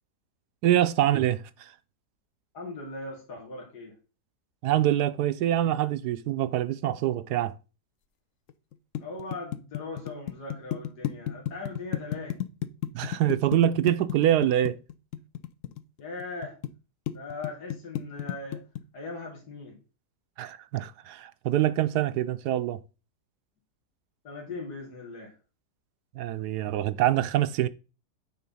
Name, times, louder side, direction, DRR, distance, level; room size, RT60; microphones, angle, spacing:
voice 1, 0.6-1.7 4.6-7.5 12.9-14.8 20.4-22.8 26.1-27.7, right 12 dB, 80° right, 1.2 m, -25 dB
voice 2, 2.5-3.9 9.0-12.4 16.0-16.6 17.1-18.6 18.9-19.8 24.2-25.3, left 3 dB, 85° left, 2.6 m, -39 dB
sound 1, 8.5-16.7 17.1-18.8, left 12 dB, 65° left, 0.9 m, -32 dB
9.3 x 3.9 x 5.5 m
omnidirectional pair, 1.7 m